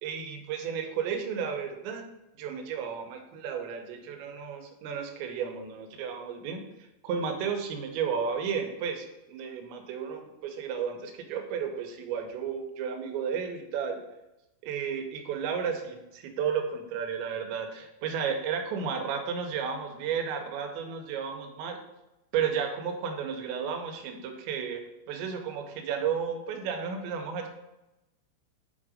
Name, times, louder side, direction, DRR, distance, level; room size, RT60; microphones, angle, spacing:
voice 1, 0.0-2.1 2.4-6.6 7.0-14.0 14.6-21.8 22.3-27.5, right 7 dB, 80° right, 5 dB, 3.1 m, -33 dB
7.8 x 3.8 x 4.9 m, 0.95 s
omnidirectional pair, 5.1 m